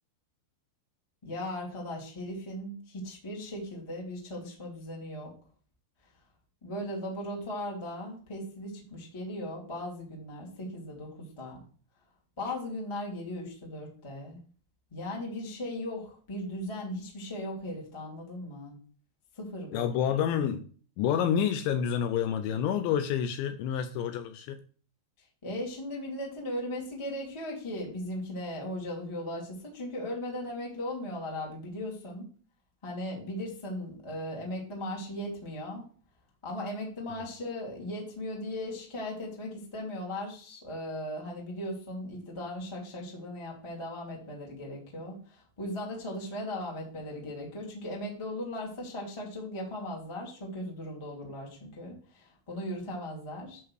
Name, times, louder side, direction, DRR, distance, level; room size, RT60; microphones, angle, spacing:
voice 1, 1.2-5.3 6.6-11.6 12.4-14.4 14.9-18.8 19.3-19.9 25.4-32.3 32.8-35.8 36.4-53.6, left 1 dB, 15° left, 1.0 m, -38 dB
voice 2, 19.7-20.7 21.0-24.6, left 8 dB, 80° left, 2.7 m, -28 dB
11.0 x 3.8 x 6.2 m
omnidirectional pair, 5.5 m